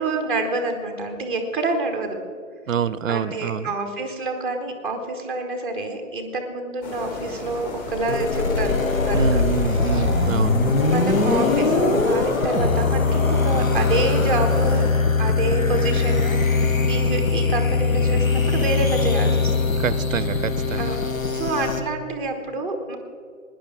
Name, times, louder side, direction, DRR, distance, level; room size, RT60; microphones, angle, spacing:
voice 1, 0.0-2.2 3.1-9.4 9.9-10.1 10.8-14.9 15.2-19.8 20.8-21.0 21.3-23.0, right 2 dB, 5° left, 3 dB, 0.6 m, -27 dB
voice 2, 2.7-3.7 9.1-10.6 19.8-20.9, right 8 dB, 70° right, 18 dB, 0.6 m, -26 dB
sound 1, 6.8-14.9, left 3 dB, 30° left, 2.2 m, -33 dB
sound 2, 8.1-21.8, left 4 dB, 75° left, 1.3 m, -21 dB
17.5 x 10.0 x 3.9 m, 2.2 s
figure-of-eight pair, 130°, 41 cm